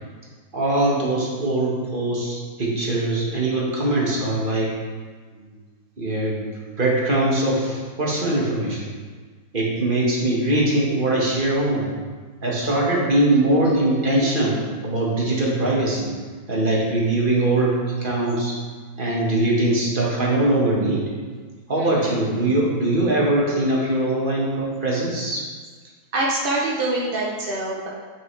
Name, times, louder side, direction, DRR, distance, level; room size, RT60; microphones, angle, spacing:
voice 1, 0.5-4.7 5.3-5.5 6.0-6.5 6.8-8.9 9.5-11.9 12.4-14.6 14.8-16.1 16.5-18.5 19.0-21.0 21.7-25.4, right 1 dB, 30° right, -4 dB, 1.6 m, -21 dB
voice 2, 21.7-22.0 26.1-27.9, right 2 dB, 50° right, -3 dB, 0.6 m, -25 dB
8.7 x 6.3 x 3.3 m, 1.5 s
omnidirectional pair, 2.1 m